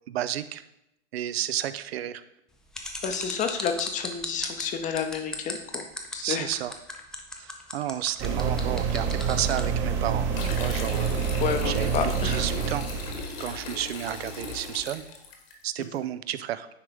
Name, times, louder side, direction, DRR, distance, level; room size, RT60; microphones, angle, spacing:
voice 1, 0.1-0.6 1.1-2.2 6.2-6.7 7.4-12.9 13.4-15.0 15.6-16.7, right 12 dB, 65° right, 14 dB, 0.5 m, -32 dB
sound 1, 2.7-9.7, left 2 dB, ahead, 0.3 m, -36 dB
voice 2, 3.0-5.9 6.1-6.5 11.4-12.5 15.8-16.0, left 7 dB, 20° left, 6 dB, 0.7 m, -30 dB
sound 2, 8.2-13.3, right 6 dB, 35° right, 1.0 m, -27 dB
sound 3, 10.3-15.5, left 4 dB, 60° left, 1.5 m, -38 dB
9.5 x 3.8 x 3.4 m, 0.85 s
hypercardioid pair, 105°, 34 cm